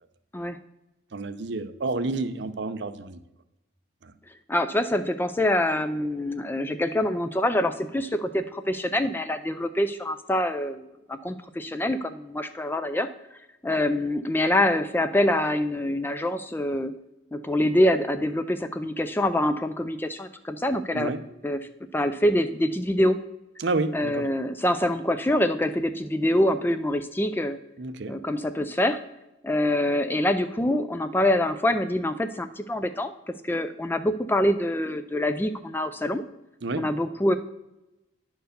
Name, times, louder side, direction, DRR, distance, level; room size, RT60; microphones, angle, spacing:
voice 1, 1.1-3.2 4.0-4.1 20.9-21.2 23.6-24.3 27.8-28.2 36.6-36.9, right 3 dB, 60° right, 11 dB, 0.6 m, -30 dB
voice 2, 4.5-13.1 13.6-16.9 17.3-21.1 21.4-21.6 21.9-23.2 23.9-27.6 28.1-29.0 29.4-33.1 33.4-36.2 36.7-37.3, left 1 dB, 10° left, 10 dB, 0.3 m, -25 dB
10.0 x 4.6 x 6.6 m, 0.95 s
head